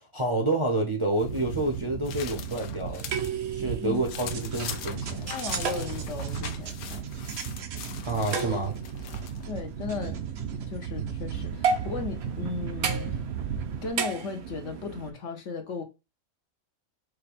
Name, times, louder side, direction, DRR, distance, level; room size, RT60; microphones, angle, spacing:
voice 1, 0.1-3.0 3.5-5.3 8.0-8.8, right 2 dB, 30° right, 0.6 m, -28 dB
sound 1, 1.2-3.3 3.7-9.5, left 8 dB, 85° left, 1.1 m, -42 dB
sound 2, 1.2-13.9, right 7 dB, 60° right, 0.8 m, -35 dB
sound 3, 2.9-15.1, right 5 dB, 80° right, 1.3 m, -35 dB
voice 2, 5.3-7.0 9.5-10.2 10.7-13.2 13.8-15.8, left 4 dB, 60° left, 1.1 m, -36 dB
5.3 x 2.2 x 4.1 m
omnidirectional pair, 1.5 m